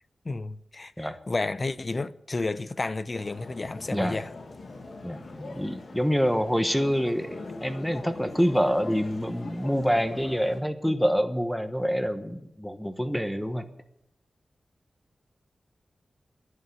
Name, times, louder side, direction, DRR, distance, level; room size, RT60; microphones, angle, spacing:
voice 1, 0.2-4.3, left 3 dB, 40° left, 0.6 m, -31 dB
sound 1, 3.1-10.6, left 3 dB, 65° left, 1.8 m, -42 dB
voice 2, 5.0-13.7, equal, 5° left, 1.2 m, -26 dB
11.0 x 9.4 x 9.1 m
wide cardioid pair, 80°, 0 cm